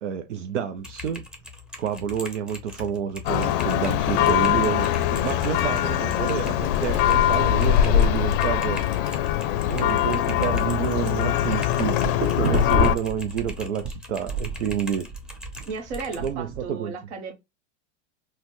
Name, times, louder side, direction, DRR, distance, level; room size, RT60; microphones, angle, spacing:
voice 1, 0.0-1.3 1.8-4.9 5.2-8.8 9.7-12.0 12.3-15.1 16.2-16.9, right 8 dB, 85° right, 0.5 m, -29 dB
Typing, 0.8-16.3, left 3 dB, ahead, 0.6 m, -41 dB
Church bell, 3.3-13.0, left 11 dB, 50° left, 0.5 m, -22 dB
voice 2, 4.2-4.7 5.1-5.3 15.7-17.3, right 4 dB, 65° right, 1.0 m, -34 dB
sound 1, 11.6-13.9 14.3-16.7, right 5 dB, 40° right, 0.9 m, -30 dB
4.0 x 2.1 x 3.0 m
hypercardioid pair, 105°, 35 cm